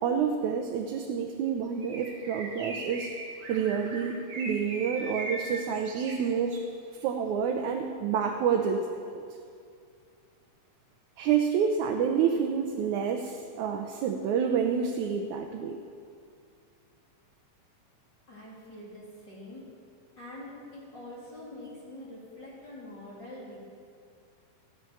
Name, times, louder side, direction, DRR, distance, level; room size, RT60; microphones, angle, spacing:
voice 1, 0.0-3.1 3.5-6.6 6.9-9.2 11.2-15.8, right 7 dB, 75° right, 3 dB, 2.2 m, -28 dB
Bird, 1.8-6.7, right 2 dB, 45° right, 1.5 m, -40 dB
voice 2, 18.3-19.6 20.2-23.6, left 1 dB, 35° left, -6 dB, 3.6 m, -45 dB
15.0 x 10.5 x 7.1 m, 2.3 s
omnidirectional pair, 3.6 m